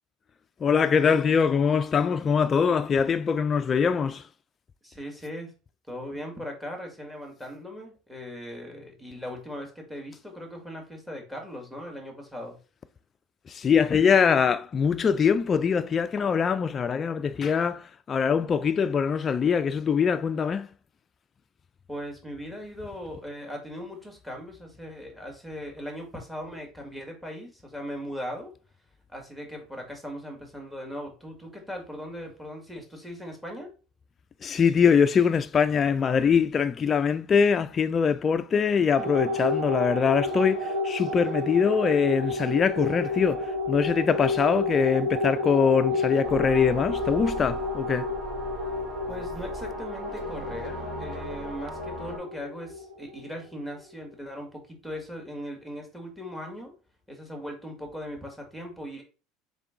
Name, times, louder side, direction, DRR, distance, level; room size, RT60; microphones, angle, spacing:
voice 1, 0.6-4.3 13.5-20.7 34.4-48.1, left 6 dB, 35° left, 0.3 m, -23 dB
voice 2, 4.8-5.5 5.9-12.6 21.9-28.5 29.1-33.7 49.1-56.7 57.1-59.0, equal, 5° right, 1.9 m, -39 dB
sound 1, 39.0-53.7, left 2 dB, 90° right, 1.5 m, -31 dB
sound 2, 46.2-52.2, right 1 dB, 30° right, 2.5 m, -38 dB
3.7 x 3.6 x 3.6 m
hypercardioid pair, 85°, 0 cm